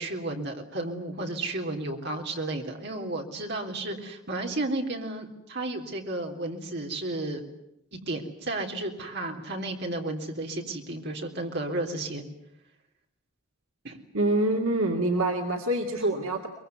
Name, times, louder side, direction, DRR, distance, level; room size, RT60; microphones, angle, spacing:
voice 1, 0.0-7.4 8.1-12.2 13.8-14.0 16.0-16.1, right 2 dB, 50° right, 2 dB, 3.6 m, -33 dB
voice 2, 14.1-16.5, right 1 dB, 70° right, 2 dB, 2.4 m, -25 dB
23.5 x 22.0 x 9.5 m, 0.82 s
head